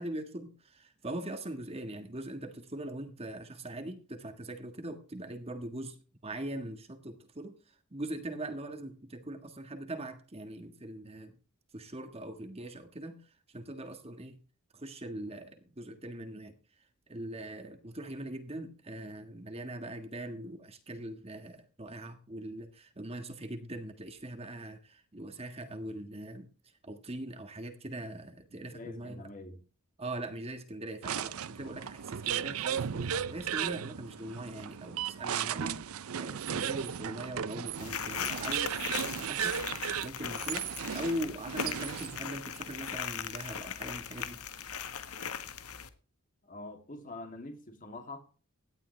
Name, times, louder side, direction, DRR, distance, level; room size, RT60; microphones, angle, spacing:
voice 1, 0.0-6.0 6.2-11.4 11.7-14.4 14.7-16.6 17.1-26.5 26.8-29.3 30.0-39.6 40.0-45.1, right 1 dB, 25° right, 1.6 m, -41 dB
voice 2, 28.5-29.6 46.4-48.2, left 2 dB, 35° left, 2.8 m, -45 dB
sound 1, 31.0-42.3, right 8 dB, 70° right, 0.5 m, -35 dB
sound 2, 37.8-45.9, left 8 dB, 80° left, 1.4 m, -39 dB
17.5 x 11.5 x 3.3 m
head